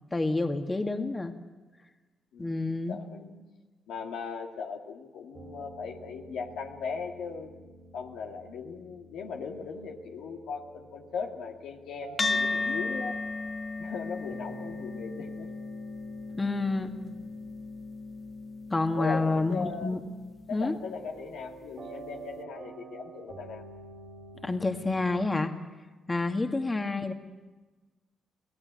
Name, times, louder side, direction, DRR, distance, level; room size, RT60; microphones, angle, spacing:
voice 1, 0.1-1.3 2.4-3.0 16.3-16.9 18.7-20.0 20.5-20.8 24.4-25.5 26.1-27.1, left 3 dB, 25° left, 5 dB, 2.0 m, -28 dB
voice 2, 2.3-3.4 3.9-7.5 7.9-13.2 13.8-15.5 18.9-20.0 20.5-23.6, left 5 dB, 75° left, 2 dB, 2.1 m, -38 dB
sound 1, 5.3-25.3, right 3 dB, 55° right, 3.3 m, -49 dB
sound 2, 12.2-20.8, left 3 dB, 40° left, 0.9 m, -35 dB
24.0 x 17.0 x 8.8 m, 1.2 s
hypercardioid pair, 45°, 0 cm